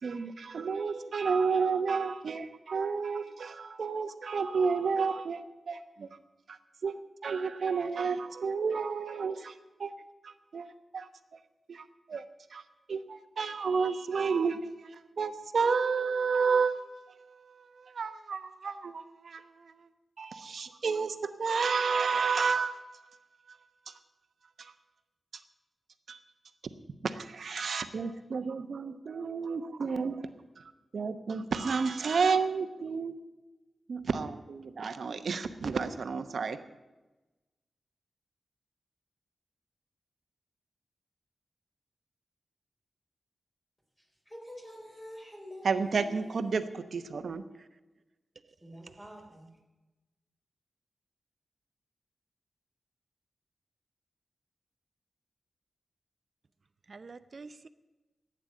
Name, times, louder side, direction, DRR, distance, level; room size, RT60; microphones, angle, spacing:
voice 1, 0.0-6.1 6.5-6.6 6.8-7.0 7.2-9.5 9.8-9.9 10.2-10.7 10.9-11.1 11.7-12.2 12.5-12.6 12.9-19.7 20.2-22.8 23.9-24.0 24.6-24.7 26.1-26.2 27.0-30.3 30.6-30.7 30.9-33.1 33.9-36.6 45.6-47.4, right 5 dB, 70° right, 1.0 m, -31 dB
voice 2, 44.3-46.6 48.6-49.5, equal, 5° left, 4.1 m, -47 dB
voice 3, 48.4-49.1 56.9-57.7, right 4 dB, 50° right, 0.5 m, -49 dB
11.5 x 8.9 x 9.9 m
wide cardioid pair, 110°, 0 cm